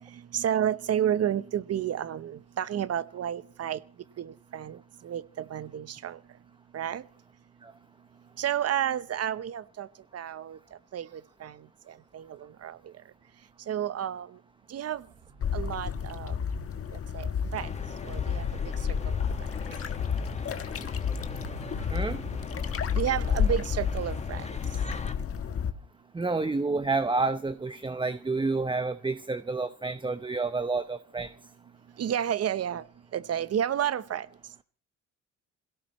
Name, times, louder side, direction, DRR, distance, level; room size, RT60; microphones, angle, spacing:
voice 1, 0.3-3.8 4.2-4.8 5.0-6.2 6.7-7.0 8.4-9.9 10.1-10.6 10.9-11.6 11.9-12.8 13.7-14.3 14.7-15.0 15.5-16.3 17.1-17.3 17.5-17.7 18.0-18.4 19.0-19.1 22.9-24.5 32.0-32.8 33.1-34.3, right 10 dB, 55° right, 0.9 m, -31 dB
sound 1, 14.9-16.7 19.7-19.8 20.7-22.6, right 3 dB, 80° right, 8.0 m, -47 dB
sound 2, 15.4-25.7, left 7 dB, 50° left, 1.4 m, -31 dB
sound 3, 17.5-25.1, left 3 dB, 20° left, 1.6 m, -40 dB
voice 2, 21.9-22.2 26.1-31.3, right 3 dB, 15° right, 0.8 m, -29 dB
27.0 x 17.0 x 3.1 m
cardioid pair, 90°, 30 cm